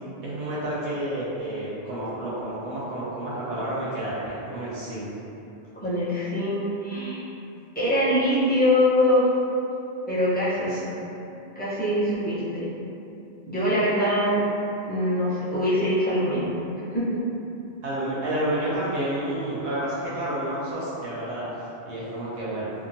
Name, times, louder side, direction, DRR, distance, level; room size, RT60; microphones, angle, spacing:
voice 1, 0.2-5.1 10.5-10.8 17.8-21.5 21.8-22.7, right 1 dB, 90° right, -8 dB, 0.9 m, -30 dB
voice 2, 5.8-7.2 7.7-9.3 10.1-10.7 11.6-12.7 13.5-14.4 14.9-16.5 16.9-17.2, left 1 dB, 10° left, -11 dB, 0.5 m, -23 dB
2.9 x 2.3 x 2.5 m, 2.8 s
omnidirectional pair, 1.1 m